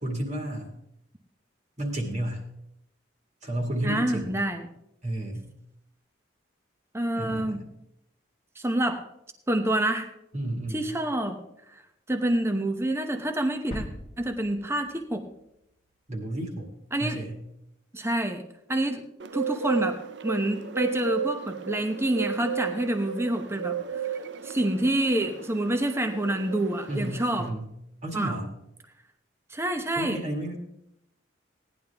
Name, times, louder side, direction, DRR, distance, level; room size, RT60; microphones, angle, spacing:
voice 1, 0.0-0.7 1.8-2.4 3.4-4.4 5.0-5.5 7.1-7.6 10.3-10.8 16.1-16.7 17.0-17.4 26.9-27.7 28.0-28.5 30.0-30.6, right 1 dB, 35° right, 1 dB, 2.0 m, -32 dB
voice 2, 3.8-4.7 6.9-7.6 8.6-9.0 9.5-10.1 10.7-11.4 11.7-11.8 12.1-13.8 14.2-15.2 16.9-17.2 17.9-18.4 18.7-19.0 19.3-20.0 20.2-27.5 28.1-28.3 29.5-30.2, right 1 dB, 15° right, 5 dB, 0.9 m, -27 dB
sound 1, 13.7-15.5 15.8-15.9, equal, 30° left, 1.3 m, -41 dB
Bird, 19.2-27.5, right 7 dB, 60° right, 0.5 m, -34 dB
17.0 x 10.5 x 3.5 m, 0.80 s
head